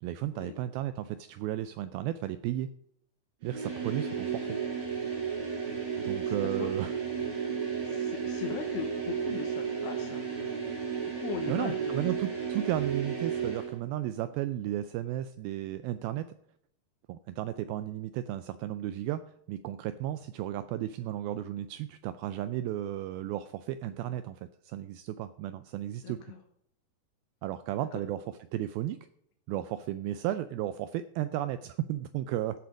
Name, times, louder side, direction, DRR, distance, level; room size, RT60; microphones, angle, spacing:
voice 1, 0.0-2.7 3.4-4.6 6.0-6.9 11.5-16.3 17.1-19.2 19.5-26.2 27.4-28.2 28.5-29.0 29.5-32.6, right 13 dB, 90° right, 12 dB, 2.1 m, -34 dB
sound 1, 3.4-13.8, right 6 dB, 60° right, 7.4 m, -33 dB
voice 2, 6.2-6.7 7.8-10.3 11.2-12.1 26.0-26.4, left 9 dB, 80° left, 3 dB, 3.0 m, -39 dB
14.0 x 7.0 x 5.1 m, 0.73 s
omnidirectional pair, 4.8 m